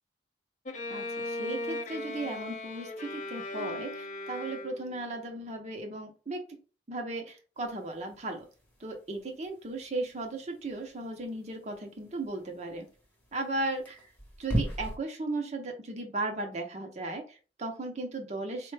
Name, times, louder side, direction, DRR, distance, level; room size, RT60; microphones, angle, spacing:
Bowed string instrument, 0.6-5.1, left 2 dB, 45° left, 0.5 m, -37 dB
voice 1, 0.9-6.4 6.9-8.5 8.8-12.9 13.3-14.1 14.4-18.7, right 2 dB, 40° right, 3 dB, 0.6 m, -36 dB
sound 1, 7.6-15.0, right 1 dB, 10° left, 0.9 m, -40 dB
4.2 x 2.1 x 3.2 m, 0.35 s
head